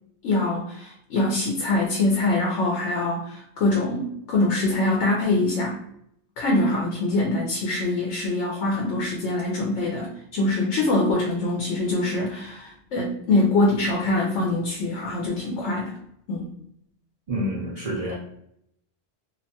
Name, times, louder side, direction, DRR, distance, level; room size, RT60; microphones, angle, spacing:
voice 1, 0.2-5.8 6.4-16.0 16.3-16.5, left 2 dB, 85° left, -2 dB, 0.9 m, -24 dB
voice 2, 17.3-18.1, equal, 50° right, -5 dB, 0.4 m, -28 dB
2.6 x 2.2 x 2.7 m, 0.74 s
omnidirectional pair, 1.2 m